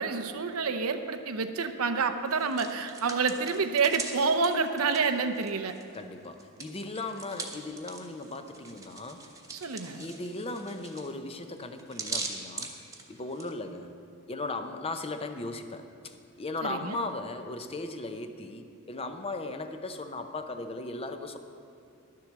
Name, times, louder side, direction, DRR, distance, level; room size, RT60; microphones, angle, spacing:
voice 1, 0.0-5.7 9.5-10.0 16.6-17.0, right 4 dB, 75° right, 7 dB, 0.7 m, -28 dB
Hands, 2.3-6.0 6.2-13.5, right 4 dB, 15° right, 1.1 m, -41 dB
voice 2, 5.9-9.4 9.9-12.8 13.1-13.9 14.3-21.4, left 2 dB, 25° left, 7 dB, 0.6 m, -37 dB
11.0 x 7.6 x 7.1 m, 2.6 s
head